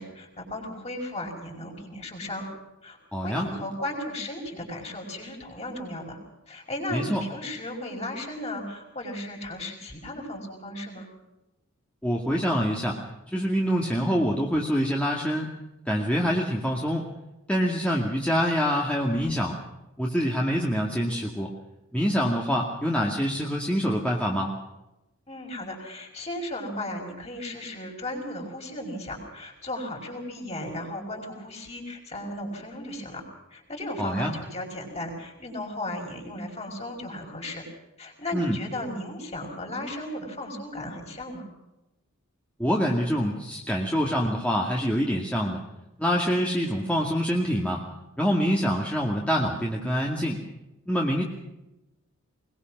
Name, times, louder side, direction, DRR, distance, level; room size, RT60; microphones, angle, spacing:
voice 1, 0.0-2.5 2.8-6.2 6.5-11.1 25.3-33.2 33.5-37.6 38.0-41.5, left 1 dB, 30° left, 1 dB, 5.6 m, -35 dB
voice 2, 3.1-3.5 6.9-7.2 12.0-13.0 13.3-15.5 15.9-17.1 17.5-19.6 20.0-21.5 21.9-24.5 34.0-34.3 38.3-38.6 42.6-45.6 46.0-47.8 48.2-50.4 50.9-51.2, equal, 5° left, -2 dB, 2.2 m, -25 dB
22.0 x 22.0 x 6.2 m, 0.96 s
head